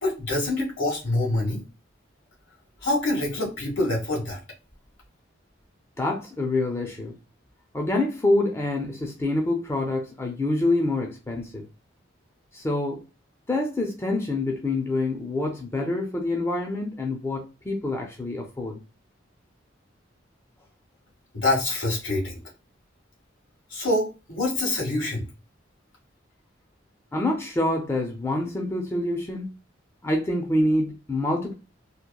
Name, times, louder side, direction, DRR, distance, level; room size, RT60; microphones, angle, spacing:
voice 1, 0.0-1.6 2.8-4.4 21.3-22.4 23.7-25.2, left 2 dB, 70° left, 1.2 m, -25 dB
voice 2, 6.0-7.2 7.7-11.6 12.5-13.0 13.5-18.8 27.1-29.5 30.0-31.5, left 2 dB, 15° left, 0.4 m, -26 dB
2.8 x 2.2 x 2.2 m
head